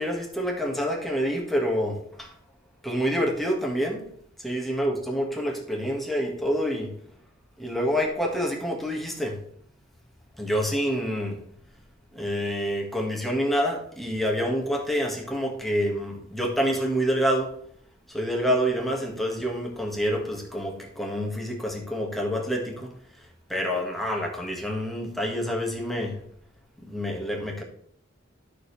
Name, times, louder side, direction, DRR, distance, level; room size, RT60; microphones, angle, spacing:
voice 1, 0.0-2.4 2.8-4.1 4.4-6.9 7.6-9.4 10.4-11.4 12.1-17.5 18.1-26.2 26.8-27.6, equal, ahead, 0 dB, 1.8 m, -27 dB
12.5 x 6.6 x 3.4 m, 0.64 s
head